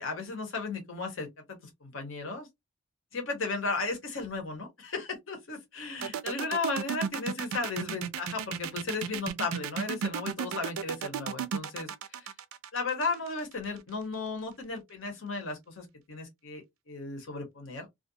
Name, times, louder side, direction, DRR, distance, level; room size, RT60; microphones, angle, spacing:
voice 1, 0.0-2.5 3.1-12.3 12.7-17.9, left 3 dB, 65° left, 0.9 m, -35 dB
sound 1, 6.0-13.8, right 7 dB, 85° right, 0.3 m, -34 dB
2.4 x 2.1 x 2.6 m
head